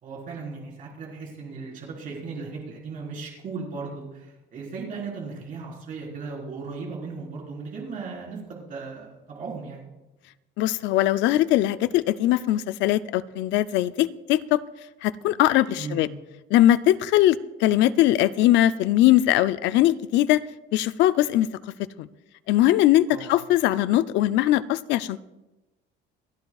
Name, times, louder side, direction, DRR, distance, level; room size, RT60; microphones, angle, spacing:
voice 1, 0.0-9.8 15.7-16.1 23.1-23.3, right 4 dB, 40° right, -3 dB, 4.3 m, -36 dB
voice 2, 10.6-14.6 15.0-16.1 16.5-20.4 20.7-21.5 22.0-22.1 22.5-25.2, left 14 dB, 65° left, 15 dB, 0.5 m, -21 dB
29.0 x 10.5 x 2.4 m, 1.1 s
cardioid pair, 170°, 20 cm